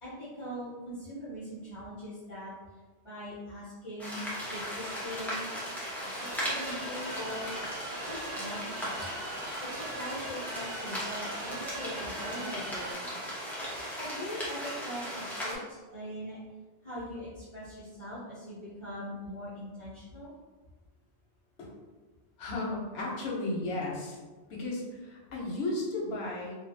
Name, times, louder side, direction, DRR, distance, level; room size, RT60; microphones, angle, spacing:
voice 1, 0.0-2.5 3.0-5.5 6.0-7.5 8.0-9.0 9.6-13.2 14.0-16.4 16.8-20.3, equal, 30° left, -11 dB, 0.8 m, -41 dB
sound 1, 4.0-15.6, equal, ahead, 0.6 m, -37 dB
sound 2, 6.2-12.9, right 2 dB, 65° right, 0.8 m, -42 dB
voice 2, 22.4-24.2 24.5-26.5, left 2 dB, 85° left, -2 dB, 1.0 m, -34 dB
2.5 x 2.4 x 2.6 m, 1.3 s
omnidirectional pair, 1.0 m